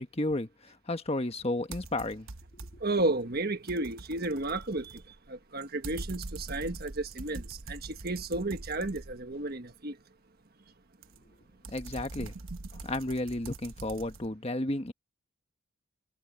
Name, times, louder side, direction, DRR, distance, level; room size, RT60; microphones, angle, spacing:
voice 1, 0.0-2.3 11.7-12.3 12.7-14.9, left 1 dB, 30° left, 1.3 m, -33 dB
sound 1, 1.7-3.0 3.3-9.5 11.0-14.3, right 2 dB, 75° right, 1.1 m, -44 dB
voice 2, 2.8-5.0 5.3-10.0, right 2 dB, 45° right, 1.4 m, -32 dB
head